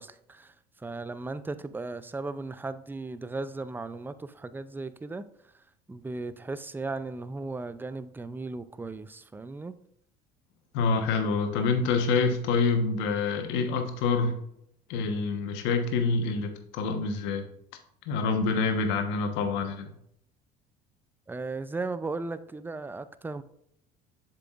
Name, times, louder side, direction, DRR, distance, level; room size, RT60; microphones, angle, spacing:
voice 1, 0.0-5.2 5.5-9.7 21.3-23.4, right 3 dB, 10° right, 0.5 m, -36 dB
voice 2, 10.7-14.3 14.9-17.5 18.1-19.9, left 4 dB, 70° left, 1.2 m, -26 dB
7.5 x 6.9 x 2.5 m
hypercardioid pair, 80°, 20 cm